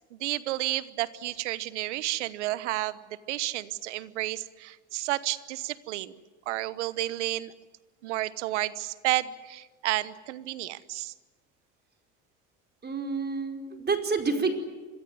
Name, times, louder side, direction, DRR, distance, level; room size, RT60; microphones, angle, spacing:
voice 1, 0.1-3.0 3.3-6.2 6.5-7.5 8.0-11.1, right 16 dB, 85° right, 17 dB, 1.2 m, -31 dB
voice 2, 12.8-14.6, right 4 dB, 30° right, 5 dB, 4.9 m, -28 dB
26.5 x 22.0 x 9.5 m, 1.3 s
hypercardioid pair, 80°, 34 cm